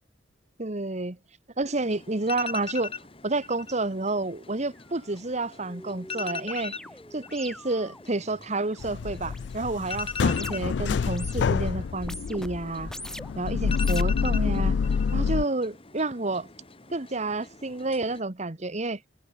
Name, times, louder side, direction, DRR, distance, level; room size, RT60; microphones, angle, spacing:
voice 1, 0.6-1.2 1.6-2.9 3.2-6.7 7.1-12.9 13.4-14.8 15.1-16.5 16.9-19.0, right 2 dB, 40° right, 1.4 m, -30 dB
sound 1, 1.7-18.2, left 5 dB, 30° left, 2.3 m, -42 dB
sound 2, 4.8-4.9 5.2-10.8 11.1-11.6 12.0-13.4 13.7-14.6, left 1 dB, 5° left, 6.3 m, -44 dB
sound 3, 8.8-15.4, left 5 dB, 70° left, 0.4 m, -27 dB
head